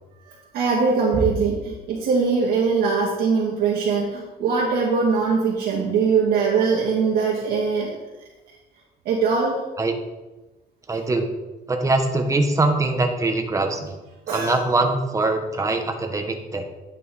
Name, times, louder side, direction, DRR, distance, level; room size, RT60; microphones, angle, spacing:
voice 1, 0.5-7.9 9.1-9.6 14.3-14.6, right 5 dB, 70° right, -5 dB, 1.9 m, -21 dB
voice 2, 10.9-11.3 11.7-14.0 14.3-16.7, right 2 dB, 20° right, 5 dB, 1.1 m, -22 dB
9.6 x 5.4 x 4.2 m, 1.1 s
cardioid pair, 110°, 17 cm